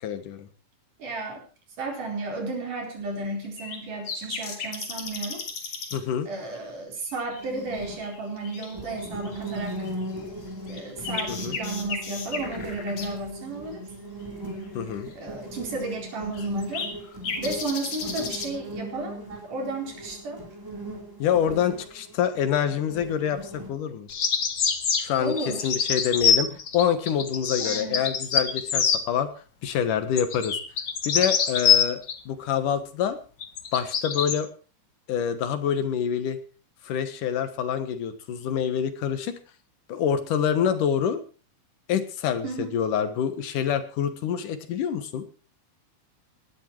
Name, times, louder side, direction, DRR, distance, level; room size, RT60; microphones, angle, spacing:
voice 1, 0.0-0.5 5.9-6.3 11.3-11.6 14.7-15.1 21.2-24.1 25.0-25.4 25.6-29.3 29.6-30.6 31.1-33.2 33.7-34.5 35.1-36.4 36.8-39.4 39.9-41.2 41.9-45.3, left 8 dB, 80° left, 10 dB, 3.1 m, -26 dB
voice 2, 1.0-1.4 1.8-5.4 6.3-9.9 10.7-13.9 15.2-16.9 17.4-20.4 25.2-25.7 27.6-28.0 42.4-42.7, right 2 dB, 75° right, 2 dB, 5.9 m, -33 dB
sound 1, 3.4-3.8 4.1-6.0 6.6-6.7 7.1-10.0 10.5-13.1 15.1-15.2 15.8-15.9 16.3-18.5, left 4 dB, 60° left, 3.9 m, -35 dB
sound 2, 7.4-23.7, right 1 dB, 5° right, 4.1 m, -38 dB
sound 3, 24.1-29.0 30.2-32.2 33.4-34.4, left 7 dB, 45° left, 1.7 m, -24 dB
19.0 x 11.5 x 4.6 m, 0.36 s
omnidirectional pair, 3.7 m